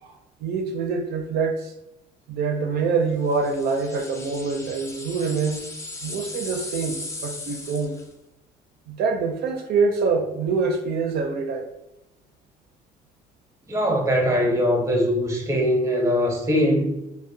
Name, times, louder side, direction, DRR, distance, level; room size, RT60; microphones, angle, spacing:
voice 1, 0.0-1.7 2.3-5.7 6.0-7.9 8.9-11.7, right 4 dB, 70° right, 3 dB, 0.4 m, -25 dB
sound 1, 3.3-8.1, left 2 dB, 15° left, 0.4 m, -37 dB
voice 2, 13.7-16.9, equal, 15° right, 1 dB, 0.7 m, -21 dB
2.5 x 2.0 x 2.6 m, 0.87 s
cardioid pair, 110°, 17 cm